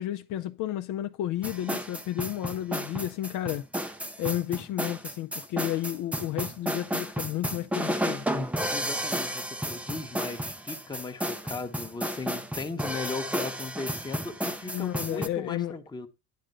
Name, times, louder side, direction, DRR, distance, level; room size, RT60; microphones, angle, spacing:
voice 1, 0.0-3.6 4.2-8.5 14.7-15.7, left 13 dB, 60° left, 0.6 m, -32 dB
sound 1, 1.4-15.3, equal, 5° right, 0.5 m, -32 dB
voice 2, 8.7-16.1, left 3 dB, 10° left, 1.0 m, -37 dB
10.5 x 3.8 x 6.5 m
cardioid pair, 120°, 35 cm